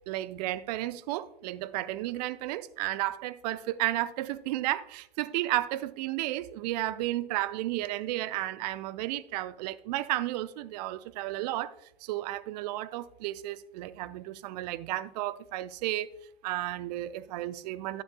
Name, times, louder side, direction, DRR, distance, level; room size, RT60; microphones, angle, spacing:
voice 1, 0.1-11.7 12.0-16.1 16.4-18.0, right 15 dB, 45° right, 0.5 m, -33 dB
10.5 x 9.5 x 2.3 m
figure-of-eight pair, 95°, 30 cm